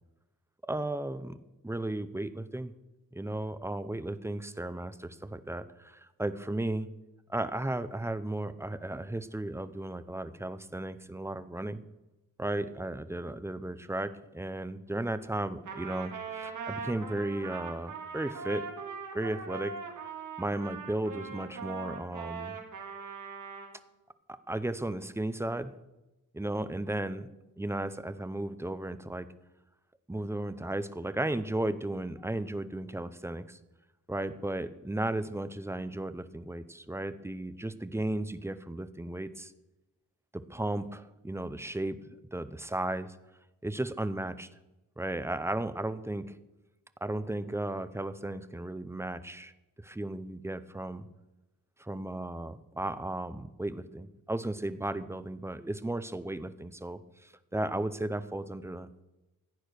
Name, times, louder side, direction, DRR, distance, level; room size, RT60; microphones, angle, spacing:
voice 1, 0.7-2.7 3.1-6.9 7.3-11.8 12.4-16.1 16.4-18.6 19.1-19.7 20.4-22.6 24.3-25.7 26.3-27.3 27.6-29.3 30.1-33.6 34.1-39.5 40.3-42.0 42.3-43.2 43.6-44.5 45.0-46.4 47.0-49.5 49.8-51.1 51.8-59.0, right 1 dB, 10° right, 12 dB, 0.5 m, -35 dB
Trumpet, 15.6-23.8, right 5 dB, 60° right, 2.0 m, -41 dB
15.0 x 8.6 x 6.4 m, 1.0 s
wide cardioid pair, 160°, 34 cm